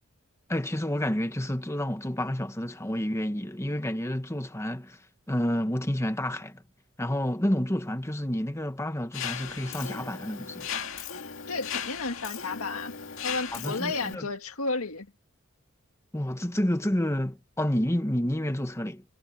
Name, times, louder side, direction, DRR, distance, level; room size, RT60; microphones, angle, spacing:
voice 1, 0.5-5.0 5.3-6.6 7.0-10.7 13.5-14.2 16.1-19.0, left 1 dB, 15° left, 1.3 m, -29 dB
Mechanisms, 9.1-14.1, left 7 dB, 65° left, 2.2 m, -37 dB
voice 2, 11.5-12.9 13.2-15.1, left 3 dB, 85° left, 2.0 m, -32 dB
head